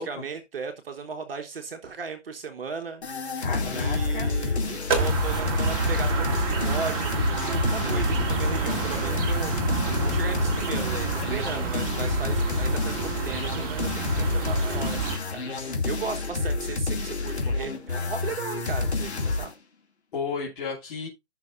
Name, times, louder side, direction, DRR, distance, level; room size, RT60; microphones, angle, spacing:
voice 1, 0.0-3.0 3.7-9.5 10.0-13.0 13.2-19.5, right 5 dB, 50° right, 5 dB, 1.3 m, -36 dB
sound 1, 3.0-19.5, left 3 dB, 65° left, 2.7 m, -29 dB
voice 2, 3.4-4.3 20.1-21.1, left 5 dB, 45° left, -4 dB, 2.9 m, -33 dB
sound 2, 4.9-15.2, right 4 dB, 30° right, 2.0 m, -29 dB
16.0 x 5.9 x 2.5 m, 0.24 s
figure-of-eight pair, 140°, 35 cm